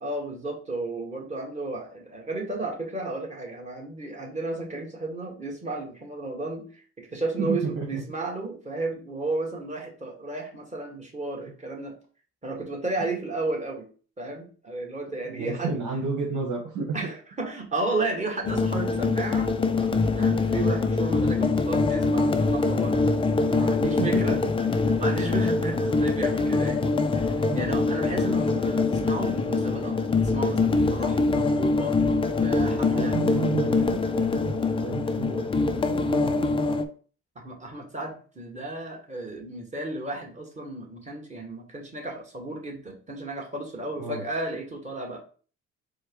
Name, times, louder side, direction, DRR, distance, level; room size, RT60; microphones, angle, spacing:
voice 1, 0.0-12.0 12.4-13.9 14.2-15.7 16.9-19.5 19.8-23.0 23.5-24.4 25.0-26.8 27.1-30.0 30.2-32.0 32.4-33.1 37.4-45.2, right 2 dB, 25° right, 0 dB, 1.6 m, -33 dB
voice 2, 7.4-8.0 15.2-16.9 23.8-24.2 27.5-27.6 28.6-28.7 32.7-33.9 34.1-35.5 35.8-36.8 44.0-44.2, right 4 dB, 70° right, -2 dB, 1.5 m, -32 dB
sound 1, 18.4-36.8, left 3 dB, 20° left, 0.4 m, -24 dB
4.6 x 2.3 x 4.6 m, 0.40 s
cardioid pair, 95°, 30 cm